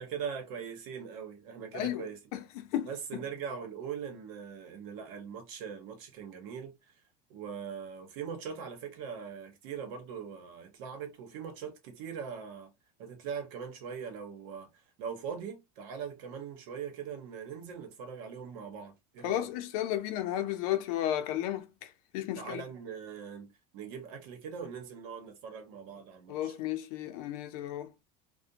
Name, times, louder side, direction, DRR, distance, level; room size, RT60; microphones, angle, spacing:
voice 1, 0.0-2.2 2.8-6.9 7.3-12.7 13.0-14.7 15.0-19.5 22.3-26.5, right 7 dB, 65° right, 1.0 m, -41 dB
voice 2, 1.7-3.2 19.2-22.6 26.3-27.9, left 12 dB, 70° left, 0.6 m, -34 dB
2.4 x 2.2 x 2.7 m
cardioid pair, 170°, 20 cm